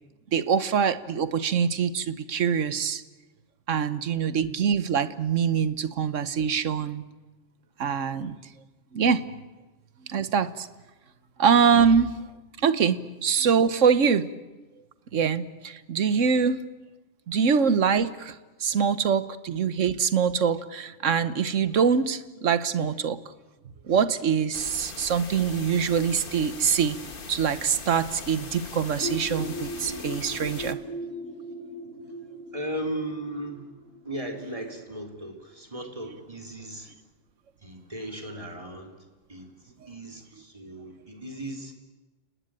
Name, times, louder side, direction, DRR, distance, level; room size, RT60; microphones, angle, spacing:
voice 1, 0.3-3.0 3.7-7.0 7.8-8.4 8.9-9.2 10.1-10.7 11.4-12.1 12.6-14.3 15.1-16.6 17.3-23.2 23.9-27.0 27.3-30.8, right 6 dB, 85° right, 13 dB, 1.4 m, -24 dB
sound 1, 24.5-30.7, left 4 dB, 45° left, 1.6 m, -41 dB
sound 2, 29.0-34.6, equal, 65° left, 3.6 m, -38 dB
voice 2, 32.5-33.7 34.0-36.9 37.6-38.9 39.3-41.7, right 1 dB, 25° right, 2 dB, 3.4 m, -36 dB
30.0 x 19.5 x 8.9 m, 1.2 s
omnidirectional pair, 1.3 m